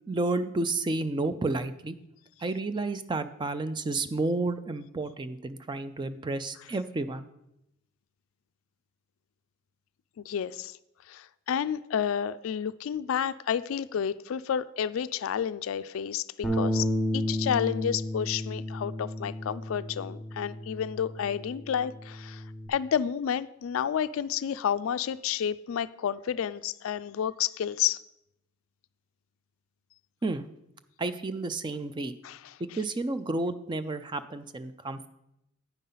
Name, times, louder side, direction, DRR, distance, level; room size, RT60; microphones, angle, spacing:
voice 1, 0.1-2.0 2.4-7.3 30.2-30.4 31.0-32.1 32.7-35.1, right 2 dB, 20° right, 11 dB, 0.4 m, -31 dB
voice 2, 10.2-10.8 11.1-16.9 17.1-22.4 22.7-28.0 32.2-32.8, left 8 dB, 70° left, 15 dB, 0.3 m, -30 dB
Bass guitar, 16.4-22.7, equal, 5° left, 1.0 m, -32 dB
9.2 x 5.4 x 5.6 m, 0.84 s
head